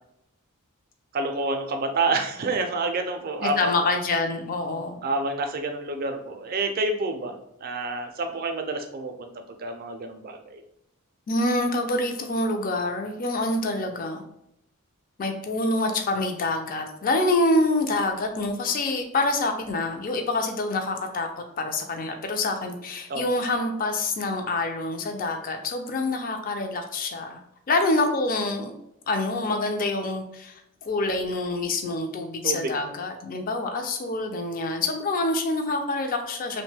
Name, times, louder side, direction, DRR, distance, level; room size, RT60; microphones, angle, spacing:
voice 1, 1.1-3.8 5.0-7.3 7.6-9.3 9.6-10.6 23.1-23.2 32.4-32.7, right 2 dB, 45° right, 6 dB, 0.4 m, -28 dB
voice 2, 3.4-5.0 11.3-14.2 15.2-27.4 27.7-28.7 29.1-36.6, left 2 dB, 40° left, 5 dB, 0.4 m, -26 dB
2.9 x 2.1 x 3.2 m, 0.80 s
head